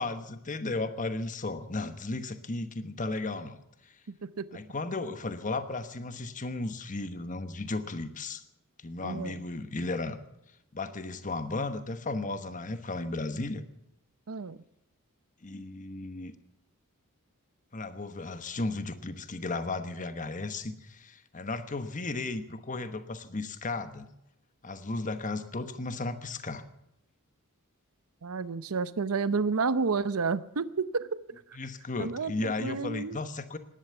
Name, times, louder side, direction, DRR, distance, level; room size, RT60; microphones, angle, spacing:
voice 1, 0.0-3.6 4.5-8.4 8.8-10.2 10.7-13.6 15.4-16.3 17.7-24.1 24.6-26.6 31.5-33.6, left 2 dB, 35° left, 10 dB, 1.1 m, -35 dB
voice 2, 9.0-9.4 14.3-14.6 28.2-31.1 32.0-33.2, right 4 dB, 75° right, 15 dB, 0.7 m, -30 dB
18.0 x 11.5 x 6.9 m, 0.82 s
head